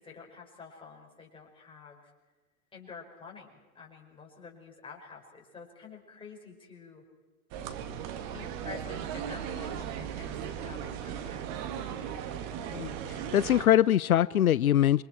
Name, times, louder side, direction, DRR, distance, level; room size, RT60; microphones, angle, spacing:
voice 1, 0.0-2.1 2.7-7.0 8.3-11.6, left 5 dB, 10° left, -2 dB, 5.5 m, -48 dB
sound 1, 7.5-13.7, right 8 dB, 40° right, 2.3 m, -37 dB
voice 2, 13.3-15.0, left 11 dB, 80° left, 19 dB, 0.6 m, -22 dB
28.5 x 24.5 x 4.6 m, 1.3 s
figure-of-eight pair, 105°, 43 cm